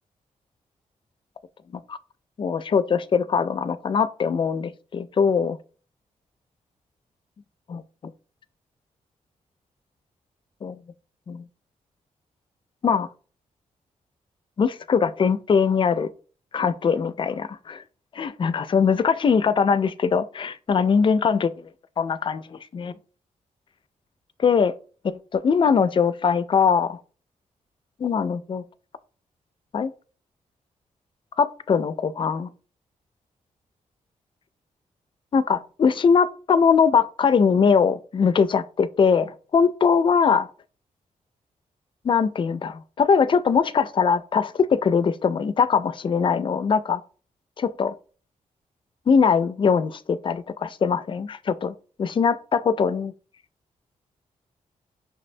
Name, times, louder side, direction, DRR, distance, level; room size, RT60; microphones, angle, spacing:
voice 1, 2.4-5.6 7.7-8.1 10.6-10.8 11.3-11.4 12.8-13.1 14.6-16.1 16.5-17.8 18.1-21.5 22.0-22.9 24.4-24.7 25.0-27.0 28.0-28.6 29.7-29.9 31.4-32.5 35.3-40.5 42.0-47.0 47.6-47.9 49.1-53.1, left 6 dB, 35° left, 0.3 m, -21 dB
5.6 x 2.1 x 2.5 m
cardioid pair, 60°, 14 cm